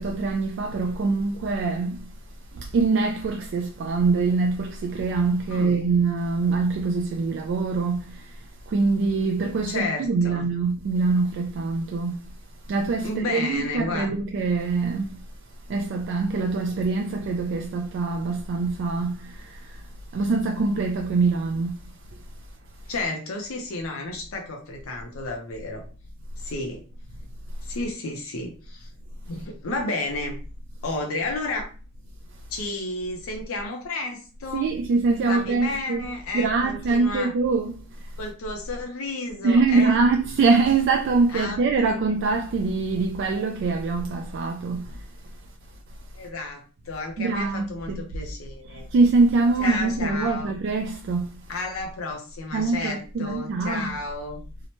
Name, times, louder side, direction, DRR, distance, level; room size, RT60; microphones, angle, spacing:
voice 1, 0.0-2.0 2.5-8.4 8.7-12.3 12.7-15.2 15.7-19.8 20.1-21.8 34.5-36.0 36.3-37.8 39.4-45.0 47.2-48.1 48.7-51.4 52.5-54.0, right 4 dB, 60° right, 0.3 m, -24 dB
voice 2, 9.7-10.4 13.0-14.1 22.9-25.8 26.4-26.8 27.6-28.9 29.3-30.4 30.8-31.7 32.5-34.7 35.3-37.3 38.2-40.0 41.3-41.9 46.1-48.9 49.6-50.5 51.5-54.4, left 2 dB, 75° left, 0.6 m, -32 dB
2.8 x 2.1 x 2.9 m
head